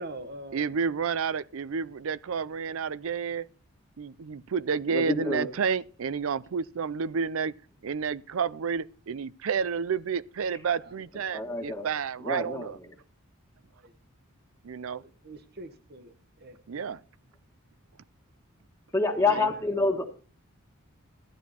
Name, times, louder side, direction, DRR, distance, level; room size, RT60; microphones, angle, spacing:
voice 1, 0.0-0.7 10.8-10.9 13.7-13.9 14.8-17.0 19.2-19.6, right 2 dB, 50° right, 1.3 m, -44 dB
voice 2, 0.5-3.5 4.0-7.5 7.8-12.8 14.6-15.0 16.7-17.0 19.3-19.5, right 6 dB, 70° right, 0.5 m, -30 dB
voice 3, 4.9-5.4 11.3-11.9 12.2-12.7 18.9-20.0, left 3 dB, 15° left, 1.5 m, -27 dB
13.0 x 10.5 x 4.2 m
head